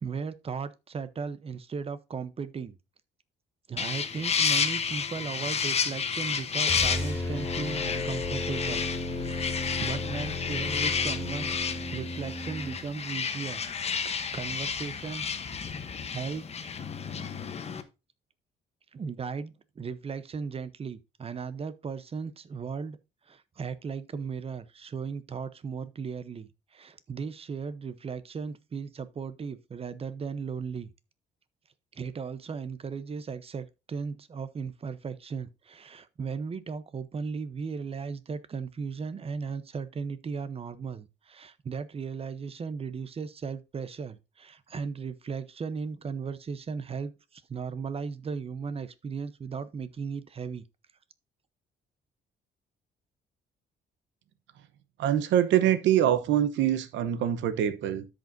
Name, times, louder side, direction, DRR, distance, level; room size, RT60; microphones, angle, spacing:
voice 1, 0.0-2.8 3.7-13.6 14.0-15.3 16.1-16.7 17.3-17.4 18.9-23.0 23.3-30.9 31.9-50.6, right 5 dB, 30° right, 0.8 m, -36 dB
sound 1, 3.8-17.8, left 6 dB, 35° left, 1.0 m, -31 dB
sound 2, 6.6-12.8, left 2 dB, 10° left, 4.4 m, -34 dB
voice 2, 55.0-58.1, right 10 dB, 80° right, 0.9 m, -24 dB
13.0 x 5.2 x 2.6 m
cardioid pair, 115°, 19 cm